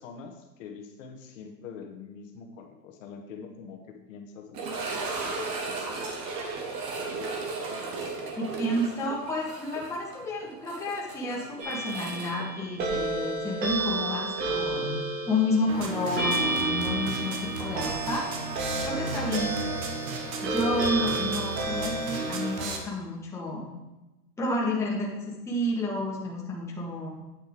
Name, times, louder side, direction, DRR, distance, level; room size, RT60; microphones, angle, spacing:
voice 1, 0.0-6.2 20.9-21.2, left 5 dB, 50° left, 3 dB, 1.6 m, -45 dB
sound 1, 4.5-13.5 13.7-13.8 14.4-14.5 17.1-17.2, right 3 dB, 15° right, 0.5 m, -35 dB
voice 2, 8.4-18.3 18.8-19.5 20.4-23.7 24.4-27.2, left 1 dB, 5° left, -4 dB, 1.3 m, -30 dB
sound 2, 11.6-22.8, right 2 dB, 75° right, 3.3 m, -32 dB
sound 3, 15.7-22.8, right 3 dB, 55° right, 1.6 m, -34 dB
9.0 x 6.4 x 5.0 m, 1.0 s
hypercardioid pair, 145°, 50 cm